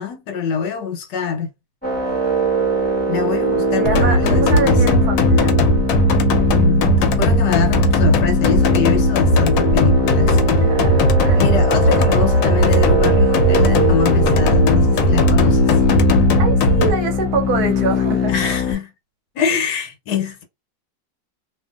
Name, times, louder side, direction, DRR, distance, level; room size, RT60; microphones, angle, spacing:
voice 1, 0.0-1.5 3.1-4.8 6.5-10.6 10.9-11.0 11.3-15.8 18.3-18.9 19.3-20.4, left 6 dB, 70° left, 1.3 m, -24 dB
sound 1, 1.8-18.7, left 2 dB, 5° left, 1.1 m, -21 dB
voice 2, 3.8-5.5 10.6-11.4 16.4-18.3, right 5 dB, 70° right, 1.1 m, -24 dB
sound 2, 3.9-16.9, equal, 90° left, 1.3 m, -16 dB
2.8 x 2.5 x 2.3 m
omnidirectional pair, 2.0 m